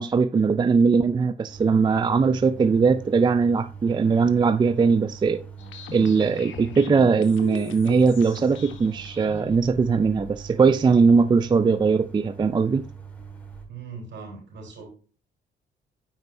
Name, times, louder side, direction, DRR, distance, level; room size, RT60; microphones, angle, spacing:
voice 1, 0.0-5.4 5.9-12.8, right 5 dB, 20° right, 0.3 m, -20 dB
sound 1, 1.5-13.7, right 6 dB, 5° left, 1.8 m, -42 dB
sound 2, 5.6-9.6, left 6 dB, 70° left, 1.0 m, -40 dB
voice 2, 13.7-14.9, right 4 dB, 65° right, 3.9 m, -40 dB
9.5 x 4.5 x 2.6 m
cardioid pair, 90°, 20 cm